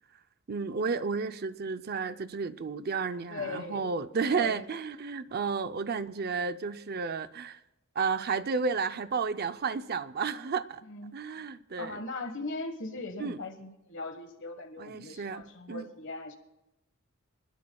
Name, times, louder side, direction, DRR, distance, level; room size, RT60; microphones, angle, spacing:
voice 1, 0.5-7.6 7.9-10.8 11.1-12.0 13.2-13.4 14.8-15.4 15.7-15.9, right 5 dB, 50° right, 11 dB, 0.6 m, -32 dB
voice 2, 3.3-3.9 4.3-4.6 10.9-11.2 11.8-16.4, left 3 dB, 60° left, 6 dB, 1.5 m, -39 dB
25.5 x 20.5 x 2.3 m, 0.94 s
head